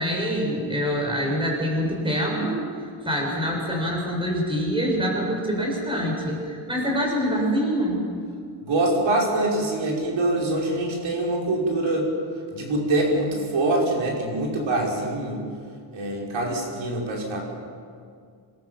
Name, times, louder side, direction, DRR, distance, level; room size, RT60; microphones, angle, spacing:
voice 1, 0.0-2.6 3.0-8.1, equal, 10° right, -1 dB, 6.5 m, -25 dB
voice 2, 8.6-12.1 12.5-15.4 15.9-17.4, right 2 dB, 70° right, -2 dB, 6.0 m, -24 dB
27.5 x 23.0 x 7.4 m, 2.2 s
wide cardioid pair, 175°, 48 cm